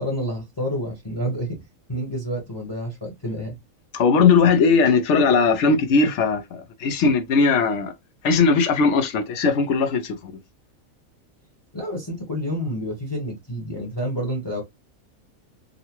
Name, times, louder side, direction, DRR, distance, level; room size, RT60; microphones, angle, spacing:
voice 1, 0.0-1.6 1.9-3.5 11.7-14.6, equal, 20° left, 0.9 m, -29 dB
voice 2, 3.9-7.9 8.2-10.3, left 4 dB, 65° left, 0.9 m, -19 dB
3.7 x 2.1 x 2.9 m
omnidirectional pair, 1.4 m